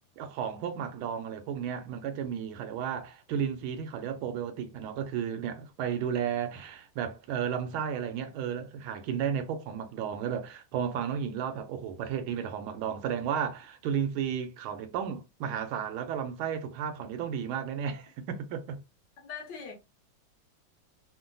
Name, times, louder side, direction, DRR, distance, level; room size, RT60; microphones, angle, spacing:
voice 1, 0.2-18.8, right 8 dB, 80° right, 1.4 m, -33 dB
voice 2, 19.2-19.7, left 6 dB, 65° left, 1.4 m, -40 dB
3.6 x 2.1 x 2.5 m
omnidirectional pair, 2.3 m